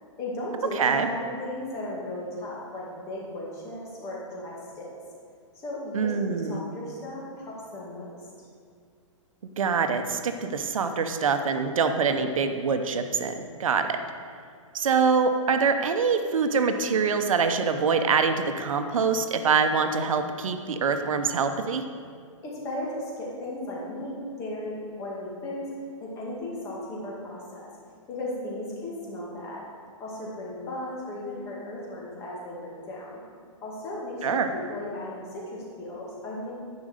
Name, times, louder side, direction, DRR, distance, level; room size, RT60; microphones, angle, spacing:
voice 1, 0.2-4.9 5.6-8.1 8.4-8.5 22.4-25.7 26.0-27.6 28.1-29.7 30.0-33.2 33.6-36.5, left 1 dB, 15° left, -5 dB, 2.0 m, -36 dB
voice 2, 0.8-1.1 5.9-6.6 9.6-14.0 14.7-21.8 34.2-34.5, right 5 dB, 80° right, 7 dB, 0.9 m, -24 dB
11.0 x 5.2 x 6.5 m, 2.1 s
hypercardioid pair, 170°, 17 cm